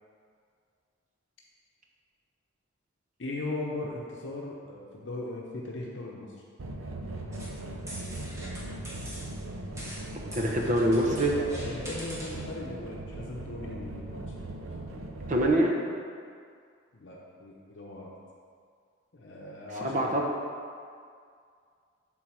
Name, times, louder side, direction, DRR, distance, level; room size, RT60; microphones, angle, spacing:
voice 1, 3.2-6.3 11.3-14.7 16.9-18.1 19.1-20.0, left 2 dB, 65° left, -3 dB, 0.8 m, -38 dB
sound 1, 6.6-15.5, right 1 dB, 90° right, 0.7 m, -39 dB
sound 2, 7.3-12.5, equal, 15° right, 1.2 m, -44 dB
voice 2, 10.3-11.3 15.3-15.8 19.8-20.2, right 1 dB, 40° right, 0 dB, 0.8 m, -24 dB
7.5 x 3.9 x 6.1 m, 2.2 s
head